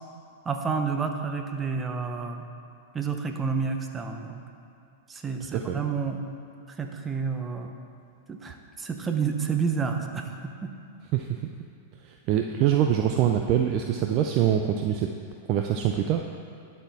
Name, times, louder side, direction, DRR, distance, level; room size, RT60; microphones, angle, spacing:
voice 1, 0.4-2.4 2.9-4.4 5.1-6.2 6.7-7.7 8.3-10.7, right 5 dB, 20° right, 5 dB, 0.8 m, -30 dB
voice 2, 5.5-5.9 11.1-11.5 12.0-15.1 15.5-16.2, right 10 dB, 45° right, 3 dB, 0.4 m, -24 dB
11.5 x 4.3 x 4.2 m, 2.6 s
hypercardioid pair, 115°, 0 cm